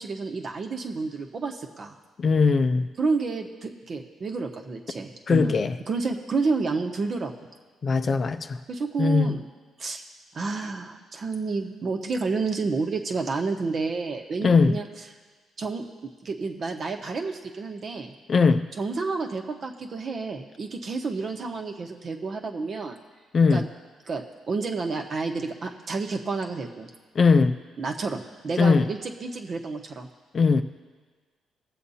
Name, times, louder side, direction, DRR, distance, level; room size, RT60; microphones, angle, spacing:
voice 1, 0.0-1.9 3.0-5.5 5.9-7.3 8.7-9.4 9.8-10.0 10.3-14.9 15.6-15.8 16.2-18.1 18.8-23.0 23.5-23.7 24.1-26.9 27.8-30.1, right 4 dB, 45° right, 3 dB, 1.1 m, -30 dB
voice 2, 2.2-2.9 5.3-5.7 7.8-8.6 9.0-9.4 14.4-14.8 18.3-18.7 23.3-23.7 27.2-27.6 28.6-28.9 30.3-30.6, left 4 dB, 45° left, 8 dB, 0.5 m, -20 dB
21.5 x 7.6 x 2.8 m, 1.4 s
cardioid pair, 90°, 0 cm